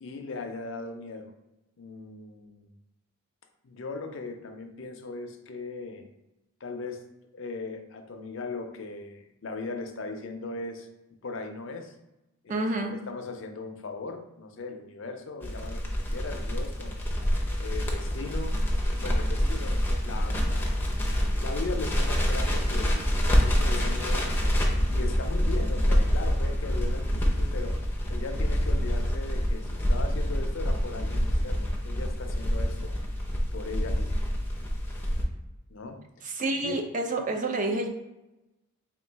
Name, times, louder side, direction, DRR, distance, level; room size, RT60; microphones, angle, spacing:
voice 1, 0.0-1.3 1.8-2.7 3.6-6.0 6.6-7.0 7.3-10.9 11.2-11.9 12.4-12.7 13.1-17.0 17.6-18.6 18.9-20.8 21.4-23.0 23.4-27.8 28.1-32.9 33.5-34.1 35.7-36.0 36.6-36.7, left 3 dB, 60° left, 5 dB, 0.5 m, -38 dB
voice 2, 12.5-12.9 36.2-37.9, right 2 dB, 35° right, 3 dB, 0.4 m, -28 dB
Crackle, 15.4-35.2, equal, 10° left, 0.6 m, -26 dB
3.7 x 2.3 x 4.5 m, 0.97 s
head